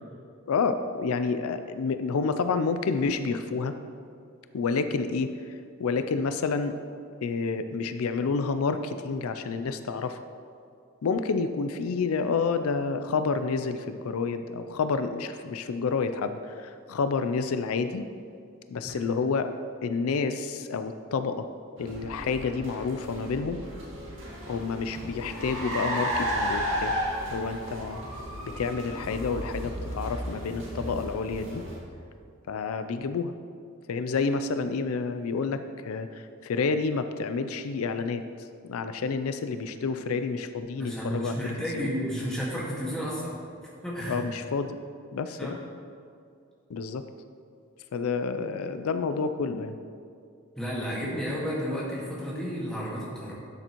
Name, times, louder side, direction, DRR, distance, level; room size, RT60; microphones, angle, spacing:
voice 1, 0.5-3.7 4.5-6.7 7.2-10.2 11.0-18.1 18.7-19.5 19.8-21.5 21.8-23.6 24.5-27.0 27.3-28.0 28.4-31.6 32.5-33.3 33.9-41.9 44.1-44.8 45.1-45.6 46.7-47.0 47.9-49.8, left 4 dB, 85° left, 9 dB, 0.4 m, -29 dB
sound 1, 21.8-31.8, equal, 60° right, 2.3 m, -42 dB
Car, 24.2-32.0, equal, 80° right, 2.2 m, -33 dB
voice 2, 40.8-43.3 43.8-44.2 45.4-45.6 50.5-53.3, equal, 5° left, -6 dB, 1.7 m, -32 dB
12.0 x 6.9 x 3.0 m, 2.4 s
head